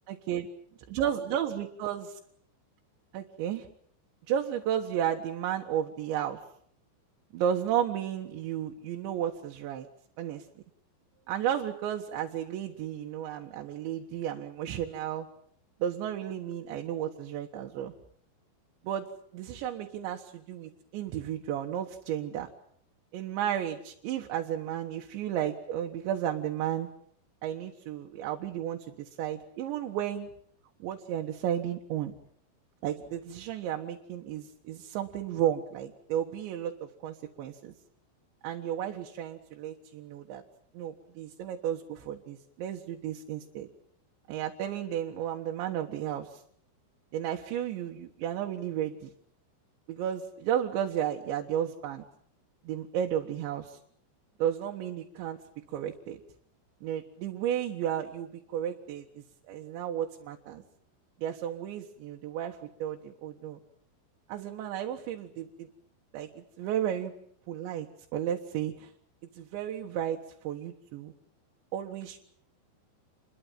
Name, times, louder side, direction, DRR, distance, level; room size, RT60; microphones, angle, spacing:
voice 1, 0.1-0.5 0.9-2.2 3.1-3.7 4.3-6.4 7.3-9.9 10.2-10.5 11.3-15.3 15.8-17.9 18.8-19.1 19.3-22.5 23.1-26.9 27.4-30.3 30.8-32.2 32.8-37.7 38.4-40.4 40.7-43.7 44.3-46.4 47.1-49.1 49.9-52.0 52.6-53.8 54.4-55.4 55.7-56.2 56.8-60.6 61.2-63.6 64.3-65.7 66.1-67.1 67.5-68.9 69.4-71.1 71.7-72.2, right 10 dB, 85° right, 2 dB, 3.8 m, -33 dB
29.0 x 22.0 x 7.6 m, 0.64 s
omnidirectional pair, 5.1 m